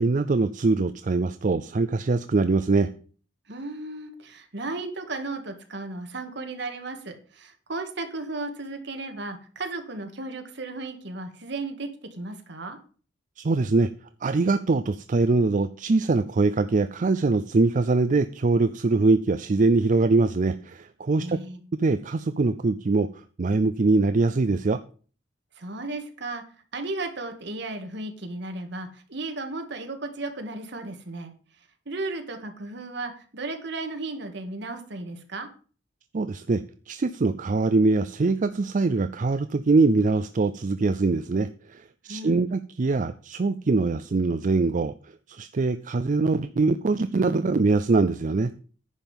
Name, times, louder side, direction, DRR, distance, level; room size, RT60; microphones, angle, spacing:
voice 1, 0.0-2.9 13.4-13.9 14.2-21.4 21.8-24.8 36.1-48.5, right 3 dB, 40° right, 12 dB, 0.4 m, -23 dB
voice 2, 3.5-12.8 21.2-21.6 25.6-26.4 26.7-31.3 31.9-35.5 42.1-42.4, right 2 dB, 65° right, 6 dB, 1.9 m, -35 dB
10.5 x 5.4 x 7.3 m, 0.40 s
head